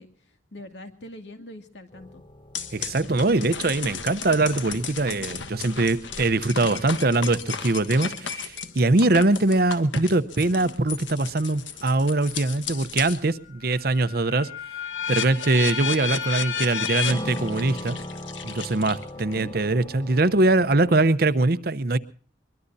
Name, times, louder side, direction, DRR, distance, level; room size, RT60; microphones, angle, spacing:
voice 1, 0.0-2.2 19.1-19.5, left 1 dB, 70° left, 2.4 m, -43 dB
sound 1, 1.9-21.1, equal, 25° left, 1.0 m, -43 dB
sound 2, 2.6-13.3 13.7-19.3, left 7 dB, 90° left, 1.5 m, -33 dB
voice 2, 2.7-14.5 15.1-18.0 18.4-22.0, right 2 dB, 55° right, 0.8 m, -22 dB
23.0 x 22.5 x 2.7 m
head